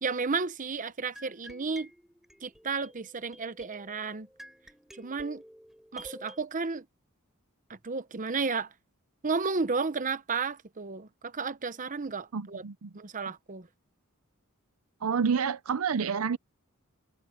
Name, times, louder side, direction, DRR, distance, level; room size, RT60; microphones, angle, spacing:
voice 1, 0.0-1.9 2.4-4.3 5.0-5.4 5.9-6.8 7.8-8.7 9.2-12.6 13.0-13.7, right 4 dB, 35° right, 0.9 m, -32 dB
sound 1, 1.2-6.4, equal, ahead, 6.5 m, -51 dB
voice 2, 12.3-12.9 15.0-16.4, right 6 dB, 75° right, 0.6 m, -28 dB
head